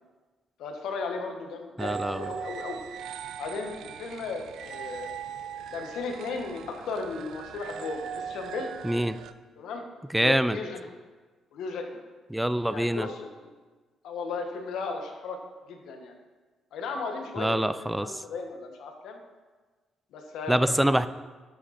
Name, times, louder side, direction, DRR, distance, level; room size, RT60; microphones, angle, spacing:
voice 1, 0.6-2.8 3.4-5.2 5.7-8.7 9.6-9.8 10.2-10.8 11.5-12.0 12.7-13.5 14.0-15.4 15.7-16.1 16.7-19.2 20.1-21.1, left 4 dB, 80° left, 3 dB, 1.4 m, -35 dB
voice 2, 1.8-2.3 8.8-9.2 10.1-10.6 12.3-13.1 17.4-18.2 20.5-21.1, right 1 dB, 5° right, 13 dB, 0.4 m, -25 dB
sound 1, 1.8-9.3, right 8 dB, 75° right, 0.4 m, -40 dB
12.5 x 6.0 x 4.3 m, 1.3 s
cardioid pair, 90°, 0 cm